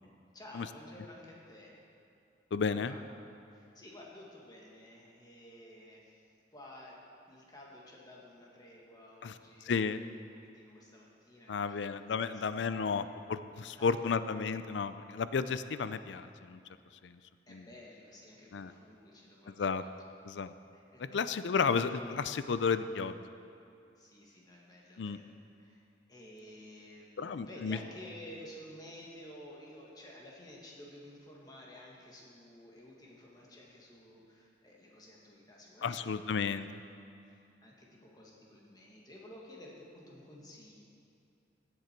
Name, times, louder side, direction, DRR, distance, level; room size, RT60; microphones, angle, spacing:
voice 1, 0.3-1.8 2.7-3.0 3.5-6.2 6.5-7.0 7.3-11.8 12.2-12.4 12.8-12.9 13.8-14.2 17.5-20.0 20.7-21.2 24.0-25.3 25.6-25.8 26.1-36.6 37.3-40.8, left 1 dB, 20° left, -3 dB, 1.8 m, -52 dB
voice 2, 2.5-2.9 9.2-9.3 9.7-10.0 11.5-16.6 17.0-17.2 17.5-17.6 18.5-18.7 19.6-19.8 20.3-20.5 21.0-23.2 25.0-25.2 27.2-27.8 35.8-36.7, left 5 dB, 75° left, 13 dB, 0.4 m, -33 dB
16.0 x 7.8 x 4.5 m, 2.6 s
head